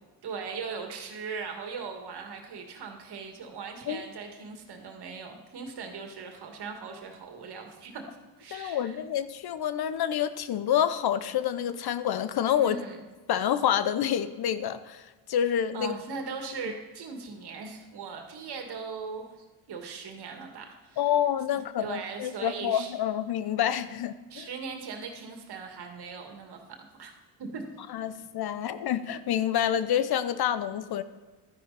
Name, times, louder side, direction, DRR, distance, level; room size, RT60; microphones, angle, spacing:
voice 1, 0.2-8.1 8.4-9.0 12.6-13.0 15.7-19.2 19.7-21.1 21.5-22.9 24.3-27.1 27.4-27.8, right 5 dB, 60° right, 3 dB, 2.2 m, -39 dB
voice 2, 8.5-12.8 13.3-15.0 15.3-15.9 21.0-24.5 27.9-31.0, left 10 dB, 55° left, 13 dB, 0.8 m, -28 dB
12.5 x 10.0 x 4.2 m, 1.3 s
supercardioid pair, 65°, 45 cm